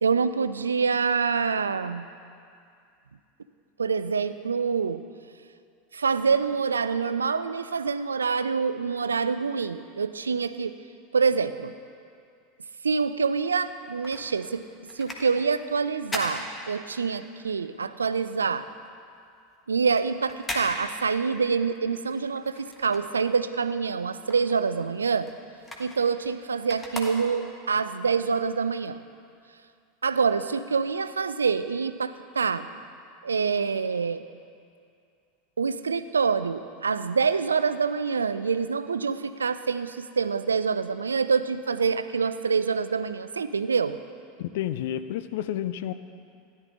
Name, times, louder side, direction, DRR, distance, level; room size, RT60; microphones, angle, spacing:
voice 1, 0.0-2.1 3.8-5.0 5.9-10.7 11.1-11.7 12.8-14.6 15.0-18.6 19.7-25.3 25.8-29.0 30.0-32.7 33.2-34.2 35.6-44.0, right 5 dB, 75° right, 13 dB, 0.3 m, -26 dB
sound 1, 13.6-17.3 17.6-23.6 23.9-27.7 28.2-28.3, left 1 dB, 15° left, 1.5 m, -39 dB
voice 2, 44.4-45.9, left 11 dB, 55° left, 12 dB, 0.4 m, -30 dB
13.5 x 11.0 x 3.8 m, 2.4 s
figure-of-eight pair, 80°, 0 cm